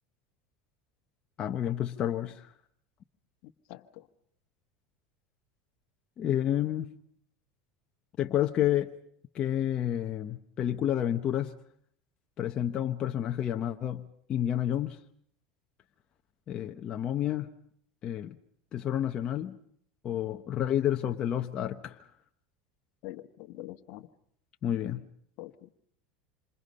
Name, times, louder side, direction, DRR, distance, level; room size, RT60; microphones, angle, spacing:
voice 1, 1.4-2.5 6.2-6.9 8.2-8.9 9.3-11.5 12.4-15.0 16.5-17.5 18.0-18.4 18.7-19.6 20.0-22.0 24.6-25.0, left 11 dB, 35° left, 1.1 m, -30 dB
voice 2, 3.4-4.1 23.0-24.1 25.4-25.7, left 16 dB, 60° left, 1.4 m, -45 dB
27.5 x 27.0 x 5.5 m
supercardioid pair, 120°, 3 cm